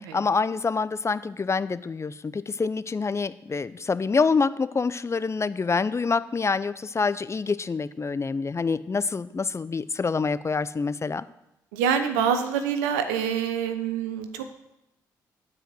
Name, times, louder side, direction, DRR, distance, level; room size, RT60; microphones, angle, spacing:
voice 1, 0.1-11.2, left 4 dB, 30° left, 15 dB, 0.5 m, -26 dB
voice 2, 11.7-14.5, right 7 dB, 85° right, 8 dB, 0.8 m, -26 dB
9.1 x 5.0 x 7.6 m, 0.87 s
hypercardioid pair, 45°, 9 cm